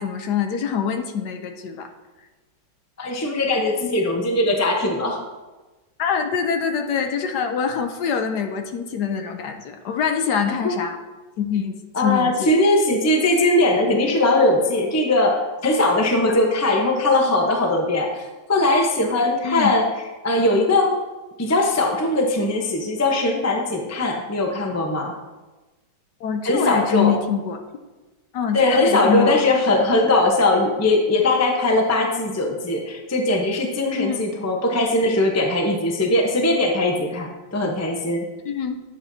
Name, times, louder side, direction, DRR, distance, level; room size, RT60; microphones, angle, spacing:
voice 1, 0.0-1.9 6.0-11.0 11.4-12.5 16.3-16.4 19.4-19.7 26.2-27.6 28.3-29.4 33.9-34.2 38.4-38.8, left 7 dB, 70° left, 5 dB, 1.1 m, -24 dB
voice 2, 3.0-5.2 11.9-19.8 20.2-20.9 21.4-25.1 26.4-27.2 28.5-38.3, left 2 dB, 20° left, 1 dB, 0.5 m, -20 dB
10.5 x 7.8 x 2.7 m, 1.2 s
omnidirectional pair, 2.0 m